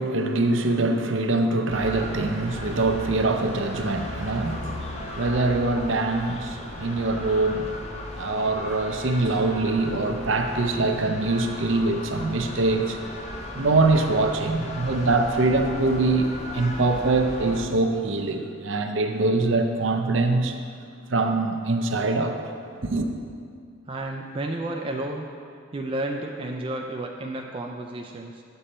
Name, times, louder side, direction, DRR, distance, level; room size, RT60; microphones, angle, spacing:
voice 1, 0.0-7.8 8.2-13.0 13.5-16.3 16.5-20.6 21.1-22.4 22.8-23.1, right 2 dB, 65° right, 5 dB, 0.6 m, -23 dB
sound 1, 1.7-17.6, left 1 dB, 30° left, 0.7 m, -36 dB
voice 2, 23.9-25.3 25.7-28.4, right 1 dB, 25° right, 2 dB, 0.4 m, -32 dB
8.9 x 6.8 x 4.2 m, 2.3 s
head